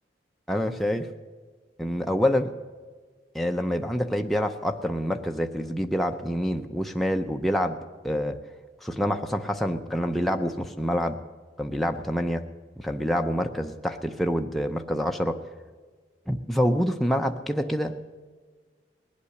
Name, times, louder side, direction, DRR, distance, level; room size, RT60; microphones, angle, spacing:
voice 1, 0.5-1.1 1.8-2.5 3.3-7.8 8.0-8.4 8.8-11.2 11.6-12.4 12.8-15.4 16.3-18.1, equal, ahead, 3 dB, 0.5 m, -26 dB
20.0 x 8.5 x 6.5 m, 1.5 s
head